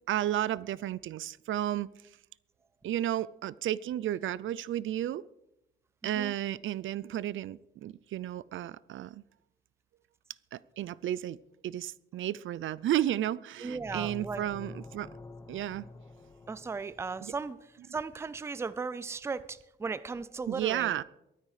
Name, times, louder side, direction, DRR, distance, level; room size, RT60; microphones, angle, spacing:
voice 1, 0.1-1.9 2.8-5.2 6.0-9.2 10.5-11.4 11.6-15.1 15.5-15.9 17.2-17.3 20.5-21.0, right 12 dB, 75° right, 0.5 m, -32 dB
voice 2, 13.6-14.4 16.5-17.6 17.9-21.0, right 4 dB, 15° right, 0.4 m, -36 dB
sound 1, 13.7-17.5, left 2 dB, 20° left, 0.9 m, -47 dB
22.0 x 9.6 x 4.9 m
wide cardioid pair, 175°, 20 cm